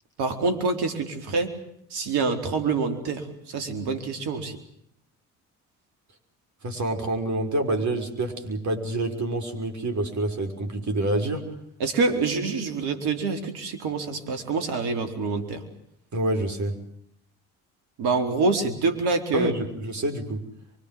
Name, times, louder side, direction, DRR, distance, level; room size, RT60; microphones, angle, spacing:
voice 1, 0.2-1.5 1.9-4.6 11.8-15.6 18.0-19.5, right 4 dB, 65° right, 7 dB, 4.6 m, -26 dB
voice 2, 6.6-11.5 16.1-16.8 19.3-20.4, right 1 dB, 40° right, 6 dB, 6.2 m, -27 dB
25.5 x 24.5 x 7.8 m, 0.70 s
hypercardioid pair, 55°, 42 cm